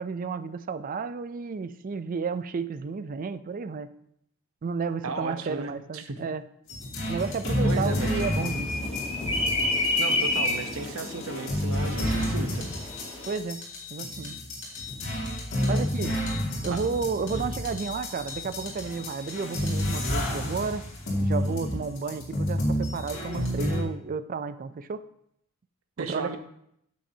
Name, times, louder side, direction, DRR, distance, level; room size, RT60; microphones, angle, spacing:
voice 1, 0.0-3.9 4.6-6.4 7.1-8.7 13.3-13.6 13.9-14.4 15.7-16.1 16.6-20.8 21.2-25.0 26.0-26.4, right 5 dB, 40° right, 13 dB, 0.4 m, -32 dB
voice 2, 5.0-6.2 7.6-8.3 10.0-12.7 15.6-15.9 16.7-16.8 17.3-17.6 26.0-26.4, right 3 dB, 80° right, 8 dB, 0.8 m, -35 dB
sound 1, 6.7-23.8, equal, 65° left, 2.4 m, -30 dB
sound 2, 7.7-13.3, left 2 dB, 30° left, 1.3 m, -30 dB
8.7 x 7.6 x 2.8 m, 0.74 s
head